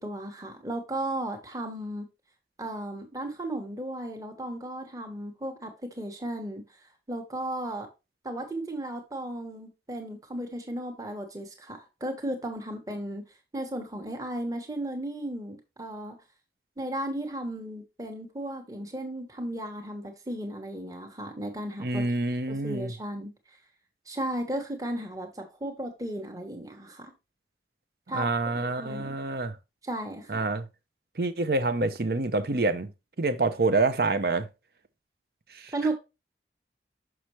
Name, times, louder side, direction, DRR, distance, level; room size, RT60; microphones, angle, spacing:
voice 1, 0.0-2.1 2.6-6.6 7.1-7.9 8.2-13.2 13.5-16.2 16.8-22.0 22.5-23.3 24.1-27.1 28.1-29.2 29.8-30.4 35.7-36.0, right 1 dB, 20° right, 1.2 m, -35 dB
voice 2, 21.8-22.9 28.1-29.6 30.3-30.6 31.2-32.9 33.2-34.5 35.5-35.7, right 3 dB, 60° right, 0.7 m, -27 dB
6.2 x 6.0 x 3.1 m
head